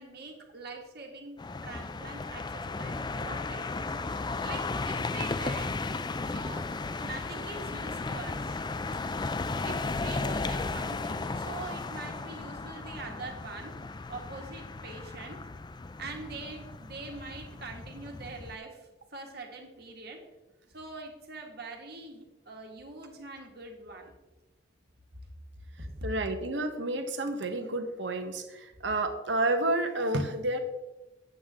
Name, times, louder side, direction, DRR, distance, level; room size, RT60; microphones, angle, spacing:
voice 1, 0.0-3.9 4.1-5.7 6.2-6.7 7.0-8.6 9.6-13.7 14.1-15.4 16.0-20.2 20.7-24.1 25.8-26.1, right 3 dB, 60° right, 2 dB, 1.8 m, -43 dB
sound 1, 1.4-18.5, left 3 dB, 25° left, 0.4 m, -35 dB
voice 2, 25.8-30.6, right 2 dB, 75° right, 6 dB, 1.2 m, -30 dB
9.3 x 8.2 x 3.7 m, 1.1 s
head